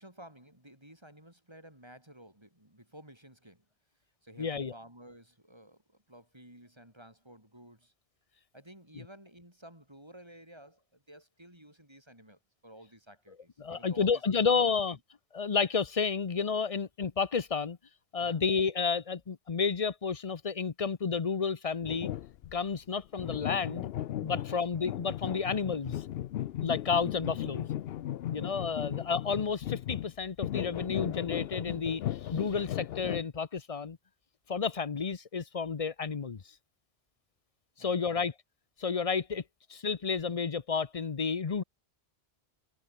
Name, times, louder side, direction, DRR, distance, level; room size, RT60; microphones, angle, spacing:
voice 1, 0.0-3.6 4.2-7.9 8.5-14.4 14.7-15.0 18.2-18.4 24.3-24.6 28.3-28.8 37.8-38.2, right 1 dB, 25° right, 5.5 m, -54 dB
voice 2, 4.4-4.7 13.6-15.0 15.3-17.8 18.1-22.1 22.5-23.9 24.2-26.0 26.6-27.7 28.3-32.0 32.3-34.0 34.5-36.4 37.8-38.3 38.8-39.4 39.7-41.6, left 5 dB, 35° left, 0.8 m, -31 dB
sound 1, 21.8-22.6 23.2-33.2, left 12 dB, 70° left, 0.8 m, -36 dB
omnidirectional pair, 1.1 m